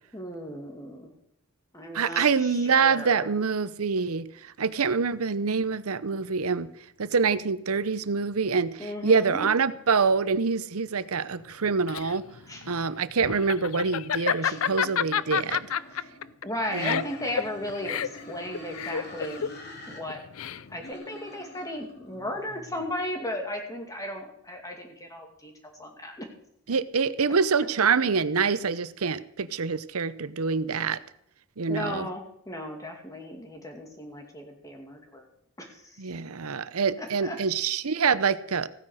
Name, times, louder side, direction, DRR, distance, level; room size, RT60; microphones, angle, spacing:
voice 1, 0.1-1.1 1.7-3.3 8.8-9.5 12.5-12.6 14.4-14.6 16.4-19.4 19.9-20.2 20.7-26.3 31.7-35.3 35.6-36.0 37.0-37.4, left 1 dB, 15° left, 3 dB, 2.4 m, -36 dB
voice 2, 1.9-6.7 7.0-12.2 12.7-15.6 16.7-17.0 26.7-31.0 31.6-32.1 36.0-38.7, right 5 dB, 90° right, 15 dB, 0.8 m, -26 dB
Laughter, 11.5-20.9, left 8 dB, 75° left, 0.5 m, -30 dB
sound 1, 14.5-16.3 16.7-20.0 20.3-22.9, equal, 50° left, 3.1 m, -46 dB
16.0 x 9.8 x 6.5 m, 0.73 s
head